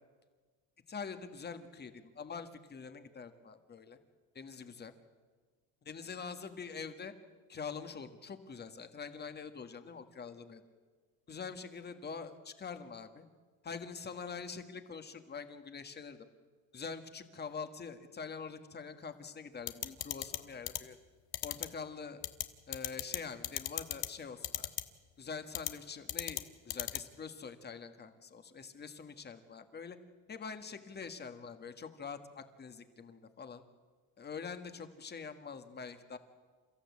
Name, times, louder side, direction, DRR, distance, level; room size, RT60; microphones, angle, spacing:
voice 1, 0.9-4.0 4.4-4.9 5.8-7.1 7.5-10.6 11.3-13.2 13.6-16.3 16.7-21.0 21.4-22.2 22.7-24.7 25.2-30.0 30.3-33.6 34.2-36.2, left 5 dB, 25° left, 9 dB, 1.6 m, -45 dB
sound 1, 19.7-20.4 20.7-20.8 21.3-21.7 22.2-22.4 22.7-23.2 23.4-24.1 24.4-24.8 25.5-25.7 26.1-26.4 26.7-27.0, left 15 dB, 75° left, 1.4 m, -34 dB
29.0 x 14.5 x 8.4 m, 1.5 s
cardioid pair, 145°, 36 cm